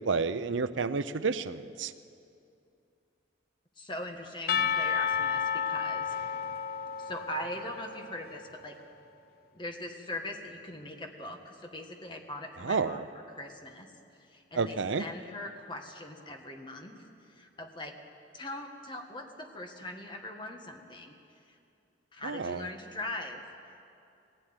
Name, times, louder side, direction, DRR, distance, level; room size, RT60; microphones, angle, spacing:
voice 1, 0.1-1.9 12.6-13.0 14.6-15.0 22.2-22.7, right 4 dB, 80° right, 14 dB, 0.6 m, -30 dB
voice 2, 3.8-6.2 7.0-8.8 9.5-13.9 14.3-17.9 18.3-21.1 21.5-21.6 22.1-23.4, left 1 dB, 25° left, 3 dB, 1.6 m, -41 dB
Percussion / Church bell, 4.5-8.3, left 7 dB, 50° left, 0.5 m, -31 dB
19.0 x 16.0 x 9.7 m, 2.6 s
head